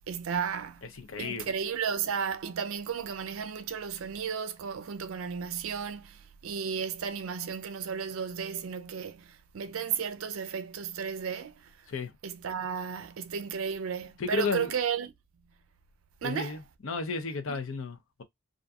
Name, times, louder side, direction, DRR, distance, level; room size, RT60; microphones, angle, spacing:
voice 1, 0.1-0.9 1.2-11.7 12.2-15.1 16.2-16.6 17.5-17.6, right 7 dB, 70° right, 0.4 m, -34 dB
voice 2, 0.8-1.5 11.9-12.1 14.2-14.7 16.2-18.2, left 4 dB, 65° left, 0.6 m, -33 dB
2.5 x 2.5 x 2.3 m
head